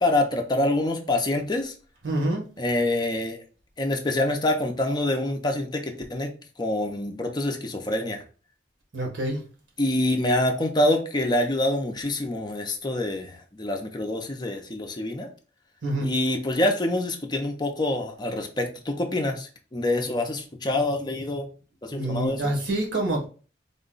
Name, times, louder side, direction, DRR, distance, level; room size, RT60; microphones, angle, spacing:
voice 1, 0.0-1.7 2.6-3.4 3.8-5.8 6.1-6.3 6.6-8.2 9.8-13.3 13.6-15.3 16.0-21.5 21.8-22.4, left 1 dB, 25° left, 3 dB, 0.5 m, -26 dB
voice 2, 2.0-2.4 8.9-9.4 15.8-16.1 21.9-23.3, right 1 dB, 80° right, 1 dB, 1.2 m, -26 dB
3.6 x 2.2 x 3.9 m, 0.38 s
head